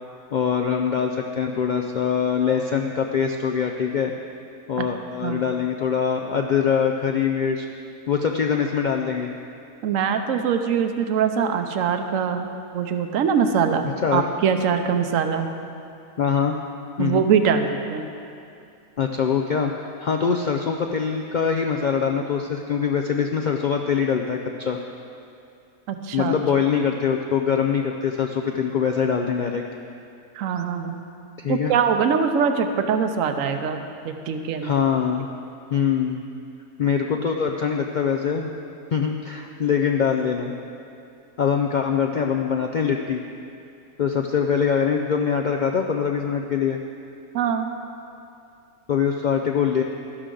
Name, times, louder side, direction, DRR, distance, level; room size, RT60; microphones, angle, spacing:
voice 1, 0.3-4.1 4.7-7.7 8.1-9.3 14.0-14.2 16.2-16.6 17.0-17.3 19.0-24.8 26.1-29.8 31.4-31.7 34.6-35.3 35.7-36.2 36.8-38.5 38.9-40.5 41.4-43.2 44.0-46.8 48.9-49.8, left 7 dB, 90° left, 2 dB, 0.4 m, -23 dB
voice 2, 9.8-13.9 14.1-15.5 17.0-18.1 25.9-26.3 30.3-31.0 31.5-33.8 34.0-34.7 47.3-47.7, right 7 dB, 70° right, 7 dB, 1.1 m, -23 dB
12.5 x 11.0 x 3.8 m, 2.6 s
omnidirectional pair, 1.5 m